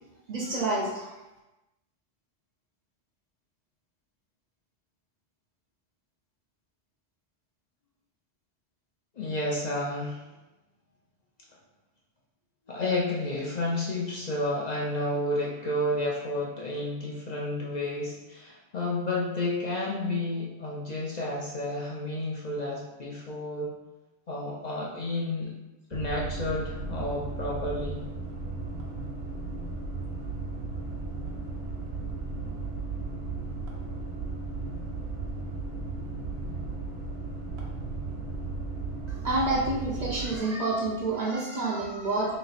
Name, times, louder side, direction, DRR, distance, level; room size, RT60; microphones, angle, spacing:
voice 1, 0.3-1.1 39.2-42.4, right 2 dB, 50° right, -3 dB, 0.6 m, -28 dB
voice 2, 9.2-10.2 12.7-23.7 24.3-25.5 25.9-28.0, left 1 dB, 50° left, -3 dB, 0.6 m, -31 dB
sound 1, 25.9-40.4, right 3 dB, 80° right, 1.0 m, -35 dB
3.1 x 2.8 x 4.0 m, 1.0 s
omnidirectional pair, 1.1 m